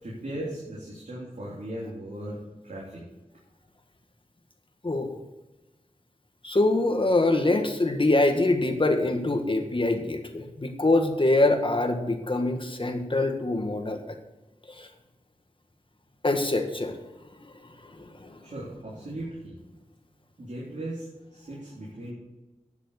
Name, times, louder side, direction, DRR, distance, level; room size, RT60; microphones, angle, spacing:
voice 1, 0.0-3.0 18.4-19.6 20.4-22.1, right 1 dB, 70° right, -6 dB, 3.5 m, -37 dB
voice 2, 4.8-5.2 6.4-14.0 14.8-14.9 16.2-17.0 17.8-18.4, left 2 dB, 40° left, 5 dB, 1.8 m, -24 dB
11.0 x 7.4 x 6.8 m, 1.1 s
wide cardioid pair, 55°, 13 cm